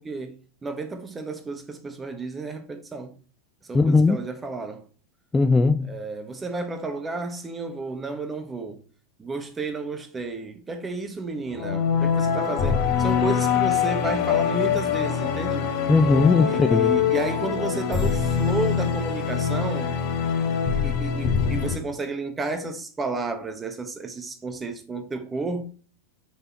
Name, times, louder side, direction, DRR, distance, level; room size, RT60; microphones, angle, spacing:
voice 1, 0.0-3.1 3.6-4.9 5.8-8.8 9.2-15.7 16.4-19.9 20.7-25.6, right 3 dB, 15° right, 1.2 m, -32 dB
voice 2, 3.7-4.2 5.3-5.9 15.9-16.9, left 3 dB, 10° left, 0.4 m, -18 dB
sound 1, 11.5-21.8, left 7 dB, 40° left, 1.3 m, -24 dB
5.9 x 5.5 x 4.2 m
figure-of-eight pair, 90°, 0 cm